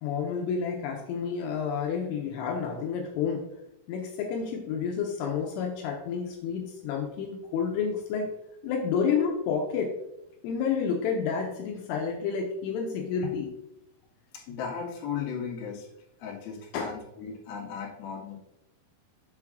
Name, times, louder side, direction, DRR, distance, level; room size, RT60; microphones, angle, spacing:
voice 1, 0.0-3.5 3.9-8.4 8.6-9.9 10.4-13.5 16.7-16.9, left 6 dB, 80° left, 2 dB, 3.2 m, -30 dB
voice 2, 14.3-15.9 16.2-18.4, left 6 dB, 60° left, -2 dB, 2.9 m, -36 dB
7.6 x 3.6 x 6.2 m, 0.86 s
omnidirectional pair, 5.9 m